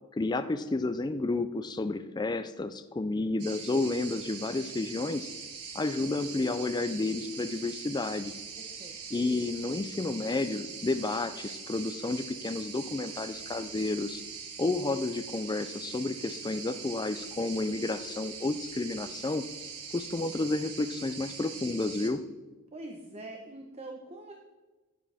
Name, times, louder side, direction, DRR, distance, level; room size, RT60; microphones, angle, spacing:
voice 1, 0.1-5.3 5.7-8.3 9.1-14.2 14.6-19.4 19.9-22.2, left 2 dB, 20° left, 10 dB, 0.4 m, -31 dB
sound 1, 3.4-22.1, right 6 dB, 80° right, 1.7 m, -42 dB
voice 2, 8.5-9.0 22.7-24.3, right 2 dB, 30° right, 2 dB, 0.9 m, -44 dB
12.0 x 9.8 x 3.4 m, 1.2 s
head